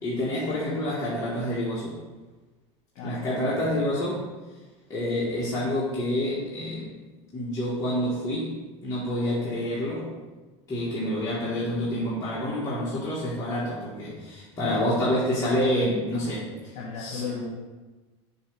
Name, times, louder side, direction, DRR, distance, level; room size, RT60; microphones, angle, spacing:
voice 1, 0.0-2.0 3.0-4.2 4.9-7.0 7.3-8.6 8.8-10.1 10.7-16.5 17.0-17.2, left 1 dB, 20° left, -9 dB, 1.7 m, -28 dB
voice 2, 2.9-3.8 16.7-17.5, left 4 dB, 55° left, -4 dB, 1.6 m, -36 dB
7.1 x 3.2 x 6.2 m, 1.2 s
supercardioid pair, 125°, 15 cm